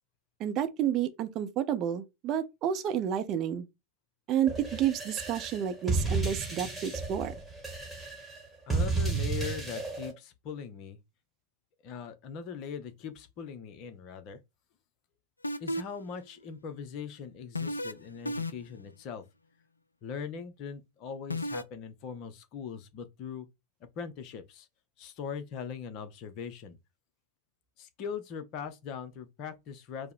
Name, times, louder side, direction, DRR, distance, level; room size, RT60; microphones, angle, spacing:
voice 1, 0.4-3.7 4.3-7.3, right 9 dB, 35° right, 0.6 m, -30 dB
sound 1, 4.5-10.1, right 3 dB, 5° right, 1.5 m, -33 dB
voice 2, 8.7-11.0 11.8-14.4 15.6-19.2 20.0-23.5 24.0-24.7 25.0-26.8 27.8-30.1, left 6 dB, 40° left, 0.8 m, -40 dB
sound 2, 15.4-16.0 17.6-17.9 18.3-18.8 21.3-21.6, left 1 dB, 80° left, 0.3 m, -32 dB
4.6 x 2.1 x 4.6 m
figure-of-eight pair, 90°, 0 cm